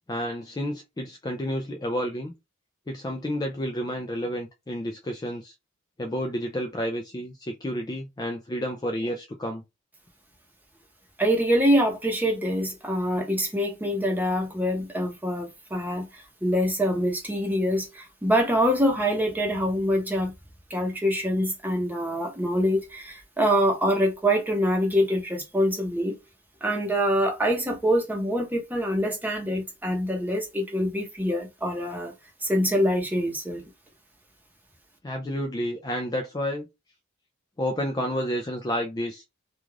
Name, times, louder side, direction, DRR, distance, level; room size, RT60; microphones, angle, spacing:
voice 1, 0.1-2.3 2.9-5.5 6.0-9.6 35.0-36.7 37.6-39.2, equal, 20° left, 0.3 m, -30 dB
voice 2, 11.2-20.3 20.7-26.2 26.6-32.1 32.4-33.6, equal, 10° right, 0.8 m, -25 dB
2.4 x 2.4 x 3.1 m
head